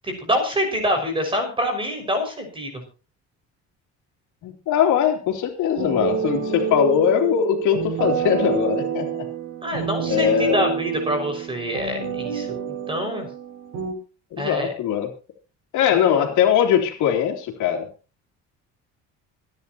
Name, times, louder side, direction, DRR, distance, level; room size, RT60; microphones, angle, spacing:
voice 1, 0.0-2.8 9.6-13.3 14.4-14.7, equal, 15° right, 5 dB, 6.2 m, -26 dB
voice 2, 4.4-9.2 9.7-10.6 14.3-15.1 15.7-17.9, left 9 dB, 75° left, 3 dB, 3.3 m, -21 dB
sound 1, 5.8-13.9, right 7 dB, 80° right, 6.2 m, -28 dB
26.0 x 10.5 x 3.1 m, 0.34 s
cardioid pair, 140°, 30 cm